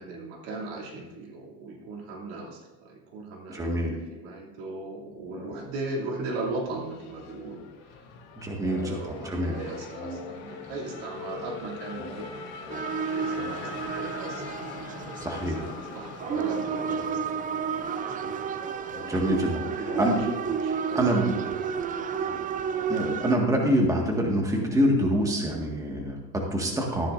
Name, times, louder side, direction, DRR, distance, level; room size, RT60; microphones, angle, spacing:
voice 1, 0.0-8.1 8.8-12.9 13.1-14.6 15.2-18.1 19.5-22.4, right 2 dB, 85° right, -2 dB, 2.7 m, -39 dB
voice 2, 3.5-3.9 8.4-9.0 9.2-9.5 15.2-15.6 19.1-20.2 21.0-21.3 22.9-27.1, equal, 10° right, 0 dB, 1.7 m, -25 dB
sound 1, 5.2-6.1 6.4-8.3 8.5-11.6 11.9-14.4 14.7-24.7, left 2 dB, 45° left, 3.3 m, -46 dB
Race car auto racing / Accelerating revving vroom, 5.8-22.7, left 5 dB, 75° left, 1.9 m, -43 dB
sound 2, 12.7-23.4, right 7 dB, 25° right, 0.5 m, -31 dB
14.0 x 9.9 x 2.6 m, 1.1 s
cardioid pair, 130°, 31 cm